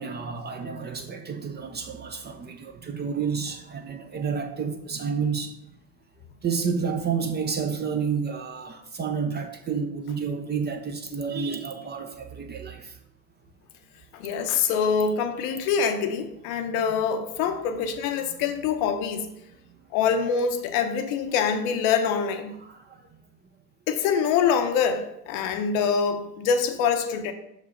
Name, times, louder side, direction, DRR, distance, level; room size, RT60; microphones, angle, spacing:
voice 1, 0.0-5.7 6.4-12.9 18.3-18.4 22.7-23.0, right 6 dB, 20° right, 0.6 m, -30 dB
voice 2, 14.1-19.3 19.9-22.5 23.9-27.3, left 6 dB, 60° left, 0.9 m, -25 dB
5.9 x 5.2 x 3.9 m
hypercardioid pair, 80°, 48 cm